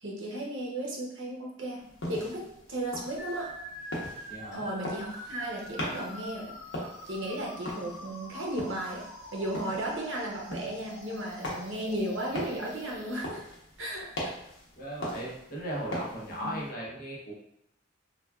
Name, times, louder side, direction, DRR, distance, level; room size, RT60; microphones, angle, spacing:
voice 1, 0.0-1.8 2.1-3.5 4.5-6.5 7.1-9.0 9.3-13.4 13.8-14.3 16.4-16.5, right 1 dB, 65° right, -2 dB, 0.7 m, -35 dB
sound 1, 1.8-16.7, equal, 80° left, 0.8 m, -41 dB
sound 2, 3.2-13.2, equal, 15° right, 1.1 m, -46 dB
voice 2, 4.3-4.6 14.8-17.3, equal, 45° left, -5 dB, 0.7 m, -37 dB
3.3 x 2.2 x 2.3 m, 0.77 s
head